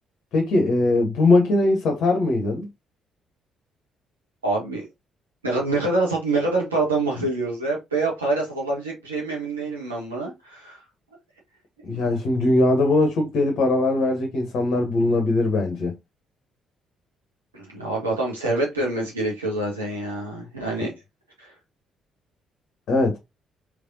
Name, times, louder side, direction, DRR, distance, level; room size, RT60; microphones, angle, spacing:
voice 1, 0.3-2.7 11.8-15.9 22.9-23.2, left 2 dB, 55° left, 0.8 m, -20 dB
voice 2, 4.4-4.8 5.4-10.8 11.9-12.0 17.5-20.9 21.4-21.5, right 2 dB, 85° right, 1.1 m, -26 dB
3.3 x 3.2 x 2.6 m
figure-of-eight pair, 45°, 0 cm